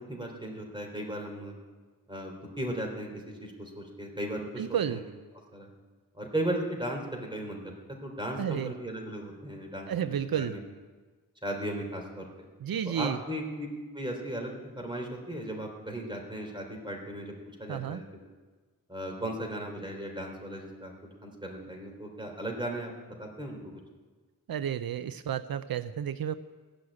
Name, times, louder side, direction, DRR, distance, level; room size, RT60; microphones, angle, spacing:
voice 1, 0.0-1.5 2.1-5.0 5.5-5.7 6.1-7.7 8.0-10.6 11.4-12.3 12.8-13.7 13.9-14.5 14.8-17.3 17.6-18.0 18.9-23.8, right 1 dB, 15° right, 1 dB, 3.4 m, -36 dB
voice 2, 4.6-5.0 8.4-8.7 9.9-10.6 12.6-13.2 17.7-18.0 24.5-26.4, right 9 dB, 80° right, 13 dB, 0.5 m, -31 dB
15.5 x 6.4 x 9.6 m, 1.4 s
wide cardioid pair, 60°, 35 cm